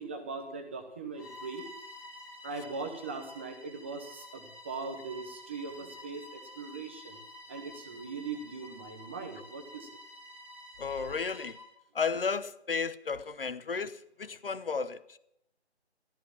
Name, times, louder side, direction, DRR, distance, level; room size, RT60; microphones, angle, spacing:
voice 1, 0.0-1.7 2.4-7.2 7.5-9.9, right 4 dB, 10° right, 4 dB, 0.8 m, -40 dB
Bowed string instrument, 1.1-11.7, left 1 dB, 10° left, 3.2 m, -50 dB
voice 2, 10.8-11.6 11.9-15.2, left 5 dB, 55° left, 15 dB, 1.1 m, -33 dB
14.0 x 13.5 x 7.3 m, 0.78 s
figure-of-eight pair, 155°, 33 cm